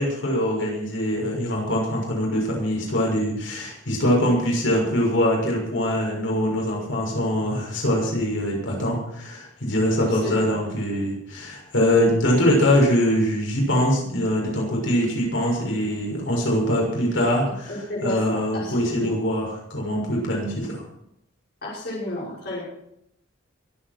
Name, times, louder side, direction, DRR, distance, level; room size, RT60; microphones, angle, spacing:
voice 1, 0.0-20.8, equal, 80° left, -2 dB, 6.7 m, -23 dB
voice 2, 9.9-10.6 17.7-19.2 21.6-22.6, left 1 dB, 55° left, -5 dB, 5.8 m, -32 dB
23.0 x 9.1 x 6.1 m, 0.76 s
head